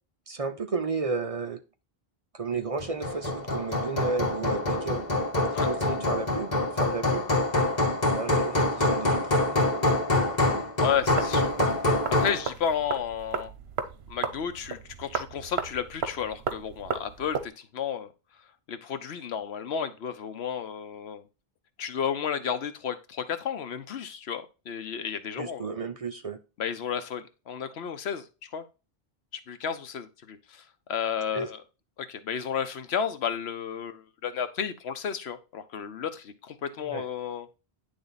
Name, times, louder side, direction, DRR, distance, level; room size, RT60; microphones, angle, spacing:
voice 1, 0.3-1.6 2.3-5.0 5.6-7.3 8.1-9.9 25.4-26.4 31.3-31.5 36.8-37.0, right 4 dB, 40° right, 7 dB, 0.7 m, -33 dB
Hammer, 2.8-12.4, left 2 dB, 40° left, 2.0 m, -25 dB
voice 2, 10.8-11.5 12.1-13.5 14.1-18.1 18.7-21.2 21.8-25.7 26.6-28.6 29.5-31.6 32.0-37.5, left 7 dB, 85° left, 10 dB, 1.0 m, -32 dB
sound 1, 10.9-17.5, right 6 dB, 85° right, 1.0 m, -35 dB
9.7 x 3.5 x 4.0 m, 0.30 s
omnidirectional pair, 1.1 m